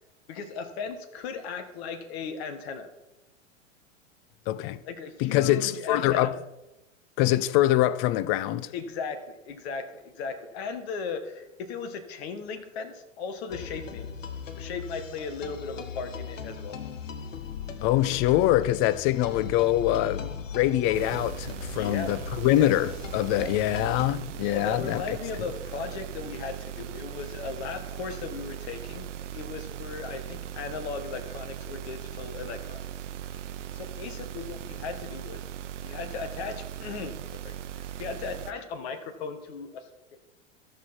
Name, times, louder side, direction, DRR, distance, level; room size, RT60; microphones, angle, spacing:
voice 1, 0.3-2.9 4.8-6.3 8.7-14.1 14.6-16.8 21.7-22.1 22.5-22.7 23.3-23.5 24.5-32.9 33.7-35.4 35.8-37.2 37.4-39.9, left 5 dB, 55° left, 1.7 m, -37 dB
voice 2, 4.5-4.8 5.2-6.4 7.2-8.7 17.8-25.2, left 14 dB, 35° left, 0.5 m, -24 dB
sound 1, 13.5-24.1, left 6 dB, 85° left, 0.9 m, -38 dB
sound 2, 20.9-38.5, right 10 dB, 70° right, 0.8 m, -39 dB
13.5 x 6.3 x 4.4 m
hypercardioid pair, 100°, 37 cm